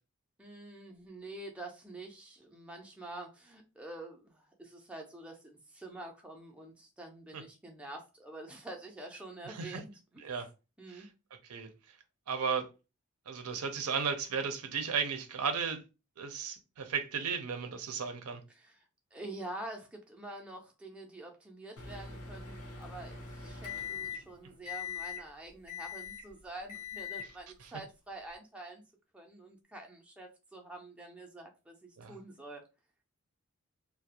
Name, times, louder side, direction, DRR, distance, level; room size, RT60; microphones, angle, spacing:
voice 1, 0.4-10.2 10.8-11.1 18.5-18.9 19.1-28.8 29.1-32.6, right 2 dB, 5° right, 0.3 m, -47 dB
voice 2, 9.5-9.8 10.2-10.5 10.9-11.1 11.5-11.7 12.3-12.7 13.3-15.8 16.2-18.4 32.0-32.2, right 6 dB, 90° right, 0.5 m, -34 dB
Microwave oven, 21.8-24.3 24.6-25.2 25.7-26.3 26.7-27.3, left 7 dB, 90° left, 0.7 m, -41 dB
2.3 x 2.0 x 2.8 m
head